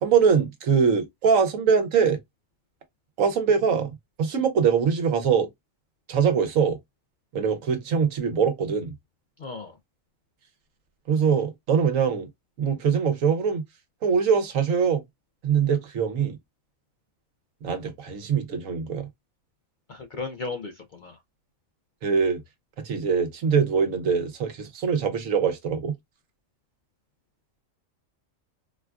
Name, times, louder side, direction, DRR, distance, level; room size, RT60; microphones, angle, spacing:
voice 1, 0.0-2.2 3.2-5.5 6.1-6.8 7.3-8.9 11.1-12.3 12.6-13.6 14.0-15.0 15.4-16.4 17.6-19.1 22.0-22.4 22.8-25.9, right 6 dB, 70° right, 1.3 m, -23 dB
voice 2, 9.4-9.7 19.9-20.7 21.0-21.2, left 4 dB, 75° left, 0.4 m, -34 dB
4.3 x 2.3 x 2.3 m
omnidirectional pair, 1.5 m